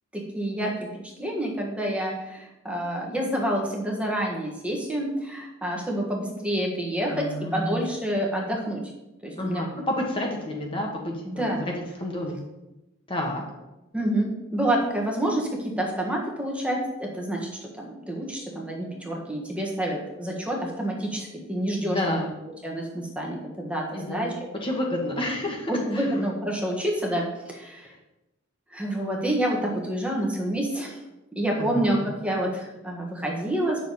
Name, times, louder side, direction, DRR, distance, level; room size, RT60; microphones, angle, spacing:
voice 1, 0.1-0.7 1.2-7.2 7.5-8.8 9.2-9.7 11.2-11.6 13.9-15.5 15.8-17.5 17.8-22.2 22.6-24.3 25.7-27.9 28.7-31.0 31.3-32.0 32.2-33.8, right 1 dB, 5° right, -1 dB, 1.4 m, -28 dB
voice 2, 7.1-7.8 9.4-12.4 13.1-13.4 21.8-22.3 23.9-26.1 31.6-32.1, left 1 dB, 25° left, 0 dB, 1.3 m, -30 dB
9.2 x 6.6 x 4.1 m, 0.96 s
head